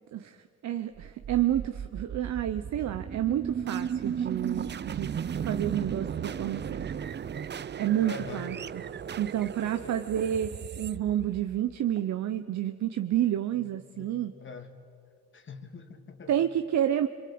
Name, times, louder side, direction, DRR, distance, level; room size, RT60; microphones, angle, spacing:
voice 1, 0.6-5.1 5.4-6.9 7.4-8.8 9.2-14.3 16.3-17.1, right 11 dB, 65° right, 8 dB, 0.9 m, -29 dB
sound 1, 1.0-12.0, right 8 dB, 35° right, 0.6 m, -35 dB
voice 2, 8.0-8.5 9.8-10.0 13.5-13.6 13.9-14.8 15.3-16.3, left 4 dB, 40° left, 8 dB, 2.3 m, -43 dB
26.0 x 23.0 x 8.7 m, 2.2 s
cardioid pair, 90°, 30 cm